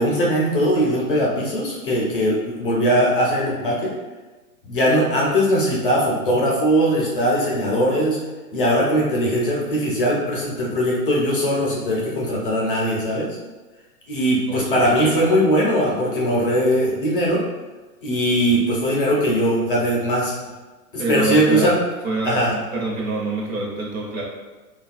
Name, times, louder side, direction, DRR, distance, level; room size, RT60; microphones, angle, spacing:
voice 1, 0.0-3.9 4.6-8.2 8.5-13.3 14.1-17.4 18.0-20.3 20.9-21.7 22.2-22.5, equal, 40° left, -4 dB, 0.5 m, -20 dB
voice 2, 14.5-15.3 21.0-21.8 22.0-24.2, right 2 dB, 65° right, -2 dB, 0.9 m, -26 dB
3.0 x 2.3 x 2.4 m, 1.2 s
hypercardioid pair, 170°, 44 cm